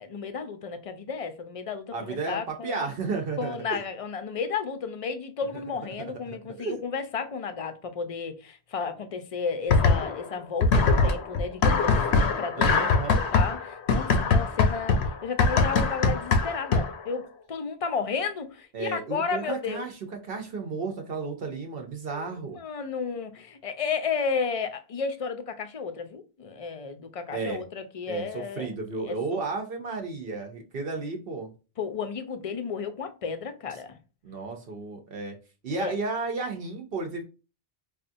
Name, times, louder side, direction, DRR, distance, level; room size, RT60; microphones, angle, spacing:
voice 1, 0.0-2.9 3.4-19.8 22.1-22.3 22.6-28.7 29.0-29.4 31.8-34.0 35.8-35.9, left 5 dB, 40° left, 0.5 m, -33 dB
voice 2, 1.9-3.8 6.3-6.8 12.6-13.2 18.7-22.6 27.3-27.6 28.1-31.5 34.2-35.4 35.6-37.2, right 4 dB, 65° right, 0.9 m, -33 dB
sound 1, 9.7-10.3 10.6-17.1, left 4 dB, 85° left, 1.0 m, -22 dB
5.0 x 2.4 x 2.6 m
omnidirectional pair, 1.1 m